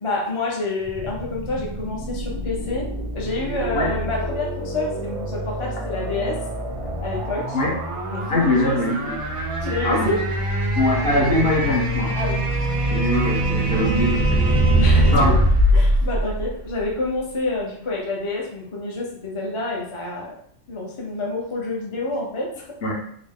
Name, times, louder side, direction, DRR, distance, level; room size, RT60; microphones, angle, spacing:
voice 1, 0.0-2.9 3.1-6.4 7.0-7.6 8.1-8.8 9.6-10.2 12.1-12.4 14.8-15.1 15.7-20.3 20.7-22.6, left 2 dB, 35° left, -2 dB, 0.5 m, -28 dB
sound 1, 0.8-17.1, right 1 dB, 50° right, 0.3 m, -23 dB
voice 2, 8.3-9.1 9.8-10.1 10.8-12.1 12.9-14.4 15.1-15.4 22.8-22.9, left 1 dB, 55° left, -2 dB, 1.0 m, -22 dB
3.6 x 2.0 x 3.6 m, 0.65 s
omnidirectional pair, 1.3 m